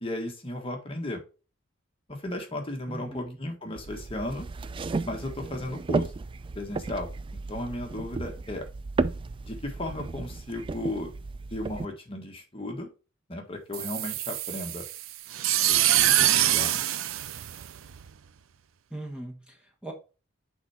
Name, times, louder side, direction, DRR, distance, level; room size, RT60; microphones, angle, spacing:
voice 1, 0.0-1.2 2.1-4.5 5.0-6.1 6.5-8.7 9.4-11.1 11.5-12.9 13.3-14.9 15.7-16.8, left 1 dB, 30° left, 3 dB, 1.4 m, -35 dB
voice 2, 2.9-3.4 18.9-19.9, right 1 dB, 5° right, 0 dB, 1.2 m, -39 dB
sound 1, 3.8-11.9, right 3 dB, 25° right, 0.3 m, -34 dB
sound 2, 13.7-18.1, right 13 dB, 85° right, 0.5 m, -25 dB
6.2 x 4.5 x 4.4 m, 0.32 s
head